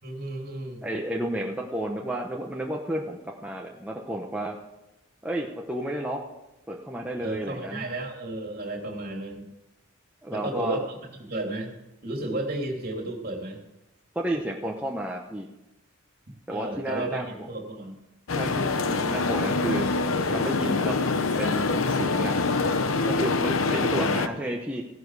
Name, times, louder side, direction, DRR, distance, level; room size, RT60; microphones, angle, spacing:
voice 1, 0.0-0.8 7.2-9.5 10.3-11.0 11.3-11.7 12.0-13.6 16.5-18.0, right 2 dB, 45° right, 1 dB, 2.9 m, -33 dB
voice 2, 0.8-4.6 5.2-6.2 6.7-7.9 10.2-10.8 14.1-15.5 16.5-17.3 18.4-19.8 20.3-21.0 21.4-22.4 23.1-24.8, right 1 dB, 5° right, -1 dB, 0.9 m, -31 dB
sound 1, 18.3-24.3, left 3 dB, 80° left, 0.8 m, -25 dB
14.5 x 11.5 x 4.8 m, 0.95 s
head